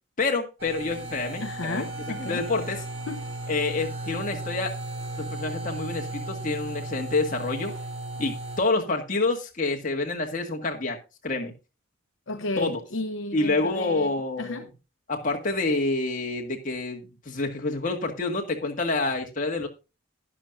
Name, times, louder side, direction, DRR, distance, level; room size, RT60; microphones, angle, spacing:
voice 1, 0.2-1.9 2.2-2.8 3.5-4.8 5.2-7.7 8.2-11.0 11.2-11.5 12.6-12.8 13.3-14.6 15.1-19.7, left 3 dB, 40° left, 1.8 m, -28 dB
sound 1, 0.6-8.6, right 2 dB, 80° right, 3.4 m, -35 dB
voice 2, 1.4-2.4 3.1-3.3 12.3-14.6, left 2 dB, 65° left, 0.8 m, -33 dB
12.0 x 10.0 x 2.6 m
head